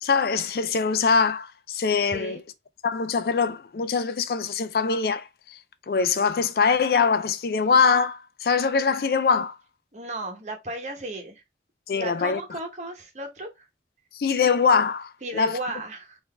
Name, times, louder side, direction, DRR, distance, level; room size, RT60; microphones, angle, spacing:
voice 1, 0.0-2.4 2.8-5.6 5.9-9.6 11.9-12.6 14.1-15.6, left 5 dB, 55° left, 0.4 m, -23 dB
voice 2, 2.1-2.4 9.9-11.4 11.9-13.7 15.2-16.2, right 1 dB, 40° right, 1.0 m, -34 dB
3.9 x 2.6 x 3.3 m
head